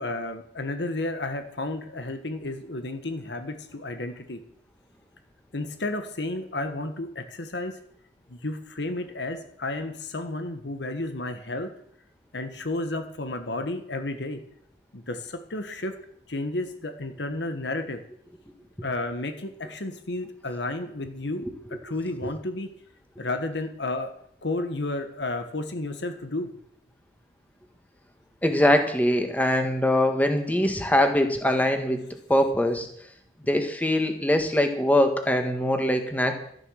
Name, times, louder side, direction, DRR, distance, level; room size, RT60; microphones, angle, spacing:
voice 1, 0.0-4.4 5.5-7.8 8.3-11.7 12.3-14.4 14.9-15.9 16.3-18.0 18.8-21.4 21.8-22.7 23.2-24.1 24.4-26.5, left 2 dB, 85° left, 8 dB, 1.5 m, -32 dB
voice 2, 28.4-32.9 33.5-36.4, left 1 dB, 10° left, 5 dB, 1.6 m, -23 dB
13.0 x 10.5 x 6.5 m, 0.68 s
head